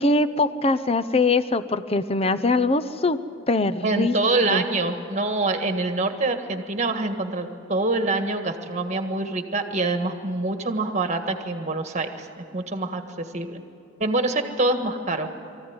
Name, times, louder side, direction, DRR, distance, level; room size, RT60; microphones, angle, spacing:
voice 1, 0.0-3.2 3.5-4.2 4.5-4.6, left 3 dB, 30° left, 12 dB, 0.7 m, -22 dB
voice 2, 3.8-13.6 14.0-15.3, right 2 dB, 35° right, 6 dB, 1.6 m, -25 dB
24.0 x 15.0 x 9.7 m, 2.8 s
head